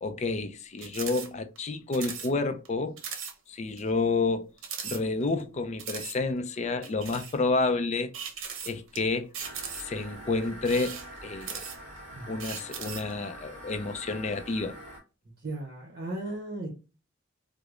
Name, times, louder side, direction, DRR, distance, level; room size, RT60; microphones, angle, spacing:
voice 1, 0.0-3.0 3.5-4.5 4.8-8.1 8.6-9.3 9.8-11.6 12.3-14.8, left 3 dB, 35° left, 0.4 m, -29 dB
sound 1, 0.8-1.3 1.6-1.7 1.9-2.3 2.7-2.8 3.0-3.3 3.8-3.9 4.6-5.4 5.8-6.2 6.8-7.4 8.1-9.0 9.3-10.0 10.6-12.0 12.4-13.1, right 7 dB, 75° right, 0.7 m, -38 dB
sound 2, 9.4-15.0, equal, 10° left, 1.3 m, -45 dB
voice 2, 15.4-16.7, right 2 dB, 50° right, 0.9 m, -36 dB
4.7 x 2.0 x 2.3 m
head